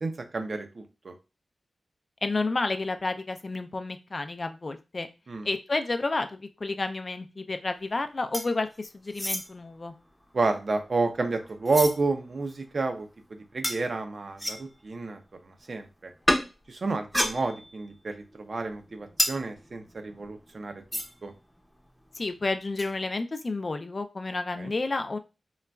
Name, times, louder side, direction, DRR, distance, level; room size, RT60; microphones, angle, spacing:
voice 1, 0.0-1.1 5.3-5.5 10.3-13.1 13.5-15.2 15.4-16.1 16.7-20.7 21.2-21.3 24.5-24.7, right 3 dB, 60° right, 5 dB, 0.5 m, -30 dB
voice 2, 2.2-5.1 5.4-9.9 22.2-25.2, left 3 dB, 45° left, 9 dB, 0.3 m, -30 dB
sound 1, 8.3-8.8 9.1-9.5 10.2-12.0 12.5-12.6 13.6-13.8 14.4-14.7 16.3-16.5 17.0-17.9 18.2-21.3 21.6-21.7 21.9-22.1 22.8-22.9, equal, ahead, 0.6 m, -31 dB
3.8 x 2.2 x 2.2 m, 0.29 s
wide cardioid pair, 70°, 0 cm